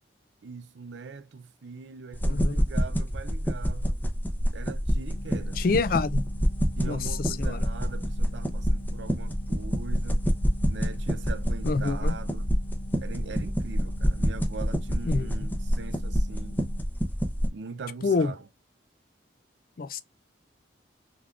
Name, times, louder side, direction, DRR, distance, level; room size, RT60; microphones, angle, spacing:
voice 1, 0.4-4.0 4.5-5.6 6.8-10.3 10.7-12.5 13.0-16.6 17.5-18.5, right 4 dB, 70° right, 0.5 m, -41 dB
sound 1, 2.1-17.5, equal, 10° left, 0.6 m, -27 dB
voice 2, 2.3-2.6 5.6-6.2 6.8-7.0 7.3-7.6 11.6-12.1 15.0-15.3 18.0-18.3 19.8-20.0, left 4 dB, 50° left, 0.4 m, -26 dB
sound 2, 5.1-16.8, left 1 dB, 85° left, 0.7 m, -44 dB
3.6 x 3.4 x 2.3 m
head